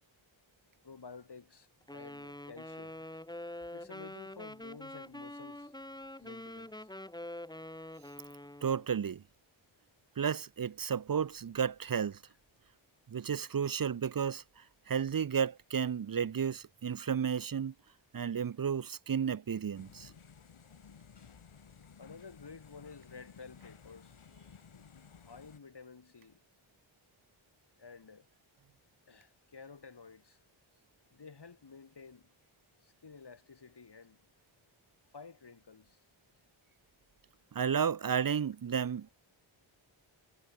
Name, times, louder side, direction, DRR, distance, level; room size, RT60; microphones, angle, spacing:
voice 1, 0.8-3.0 3.7-5.7 6.2-6.9 21.1-21.3 22.0-24.2 25.2-26.4 27.8-28.3 29.1-30.4 31.1-32.3 32.8-34.3 35.1-36.0, left 5 dB, 55° left, 4.3 m, -52 dB
Wind instrument woodwind instrument, 1.9-8.9, left 1 dB, 10° left, 1.6 m, -45 dB
voice 2, 8.6-9.2 10.2-12.2 13.1-17.7 18.1-20.1 37.5-39.1, right 7 dB, 45° right, 0.7 m, -32 dB
sound 1, 19.7-25.6, left 6 dB, 80° left, 3.1 m, -56 dB
wide cardioid pair, 120°, 49 cm